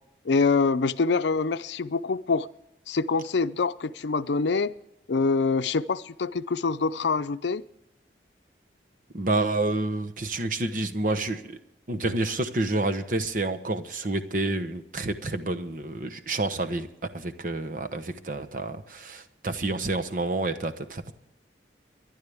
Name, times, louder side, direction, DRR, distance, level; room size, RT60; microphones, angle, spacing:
voice 1, 0.2-2.5 2.9-4.7 5.1-7.6, left 4 dB, 85° left, 0.5 m, -25 dB
voice 2, 9.1-11.4 11.9-16.9 17.1-21.1, right 2 dB, 50° right, 1.0 m, -29 dB
24.5 x 11.0 x 3.5 m
head